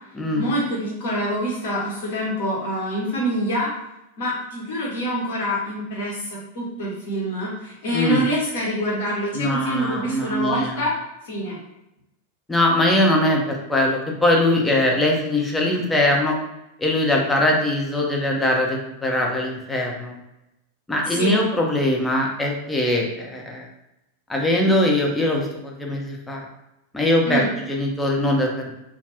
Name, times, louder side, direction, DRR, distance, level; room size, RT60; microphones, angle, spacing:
voice 1, 0.3-3.7 4.2-10.9 11.2-11.6 21.1-21.4 27.2-27.5, equal, 55° left, -6 dB, 1.0 m, -25 dB
voice 2, 7.9-8.2 9.3-10.8 12.5-16.4 16.8-20.2 20.9-23.7 24.3-26.4 26.9-27.4 27.7-28.7, left 1 dB, 10° left, -1 dB, 0.6 m, -21 dB
2.4 x 2.4 x 3.3 m, 0.91 s
figure-of-eight pair, 90°, 0 cm